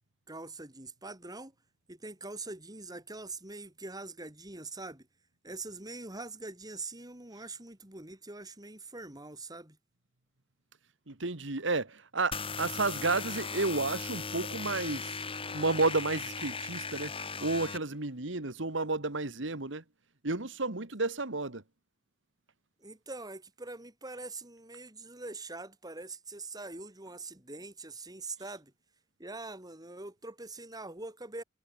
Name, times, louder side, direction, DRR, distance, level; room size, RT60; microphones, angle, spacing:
voice 1, 0.3-1.5 1.9-5.1 5.4-9.8 22.8-28.7 29.2-31.4, right 3 dB, 20° right, 3.7 m, -43 dB
voice 2, 11.1-15.1 15.5-19.8 20.2-21.6, right 3 dB, 75° right, 2.0 m, -32 dB
sound 1, 12.3-17.8, left 4 dB, 30° left, 7.1 m, -38 dB
head